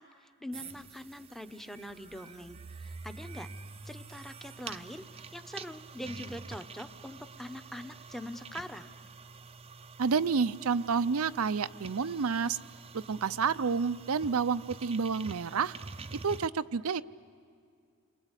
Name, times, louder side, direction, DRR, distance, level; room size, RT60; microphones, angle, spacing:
voice 1, 0.0-3.5 3.8-8.9, equal, ahead, 8 dB, 0.9 m, -43 dB
sound 1, 0.5-16.5, right 4 dB, 25° right, 0.6 m, -47 dB
voice 2, 10.0-12.6 12.9-15.7 16.2-17.0, right 5 dB, 70° right, 15 dB, 0.6 m, -29 dB
29.5 x 23.5 x 8.2 m, 2.3 s
head